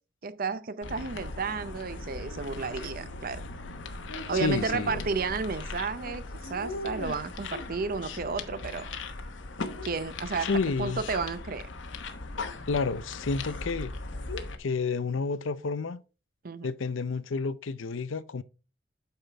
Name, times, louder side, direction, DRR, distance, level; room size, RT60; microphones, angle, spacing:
voice 1, 0.2-3.4 4.3-8.8 9.8-10.5 10.8-11.7 16.4-16.7, right 4 dB, 50° right, 0.7 m, -32 dB
sound 1, 0.8-14.6, left 3 dB, 75° left, 1.1 m, -38 dB
voice 2, 4.3-5.0 10.5-11.0 12.7-13.9 14.6-16.0 16.6-18.4, left 4 dB, 90° left, 0.6 m, -30 dB
8.7 x 5.7 x 3.4 m
head